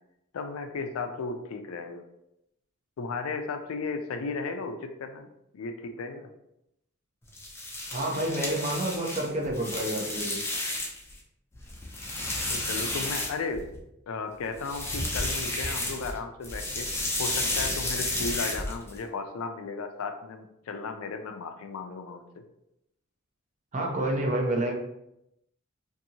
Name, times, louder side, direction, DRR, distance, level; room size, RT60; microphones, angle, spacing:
voice 1, 0.3-2.0 3.0-6.3 12.3-13.6 14.1-16.9 17.2-22.4, left 4 dB, 85° left, 6 dB, 0.4 m, -35 dB
sound 1, 7.3-11.1 11.5-13.8 14.5-16.2 16.4-19.0, left 1 dB, 10° left, 0.5 m, -32 dB
voice 2, 7.9-10.4 23.7-24.7, right 1 dB, 35° right, 0 dB, 0.6 m, -29 dB
2.7 x 2.6 x 2.7 m, 0.82 s
head